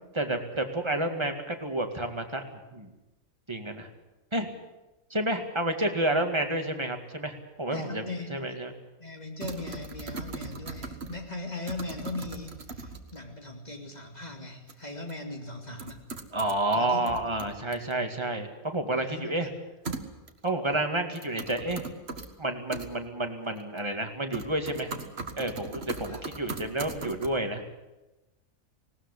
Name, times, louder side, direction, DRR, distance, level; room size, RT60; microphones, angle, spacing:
voice 1, 0.2-2.9 3.5-3.9 4.3-4.5 5.1-8.7 16.3-19.5 20.4-21.8 22.4-24.9 25.4-27.6, right 1 dB, 20° right, 5 dB, 2.2 m, -30 dB
voice 2, 7.7-8.4 9.0-16.0 16.7-17.2 17.6-17.8 19.1-19.5 26.1-26.2, left 2 dB, 30° left, 3 dB, 3.1 m, -39 dB
sound 1, 9.4-11.3 11.7-13.2 14.7-14.8 15.1-15.2 15.8-16.8 17.1-17.9 19.9-20.5 21.1-22.3 22.7-22.9 23.6-24.0 24.3-27.3, right 3 dB, 45° right, 1.9 m, -39 dB
19.0 x 18.5 x 9.9 m, 1.0 s
omnidirectional pair, 1.5 m